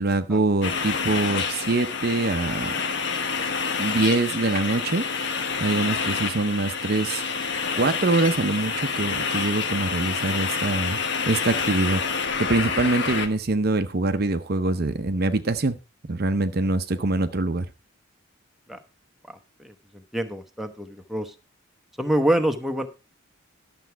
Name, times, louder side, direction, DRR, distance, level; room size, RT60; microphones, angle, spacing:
voice 1, 0.0-2.7 3.8-5.0 5.6-7.2 7.8-11.0 11.3-12.0 12.4-15.8 16.1-17.7, right 2 dB, 50° right, 10 dB, 0.7 m, -24 dB
sound 1, 0.6-13.3, left 5 dB, 55° left, 1.2 m, -28 dB
voice 2, 16.9-17.3 18.7-18.8 19.3-21.3 22.0-22.9, right 1 dB, ahead, 5 dB, 0.9 m, -27 dB
11.5 x 7.0 x 4.5 m, 0.30 s
head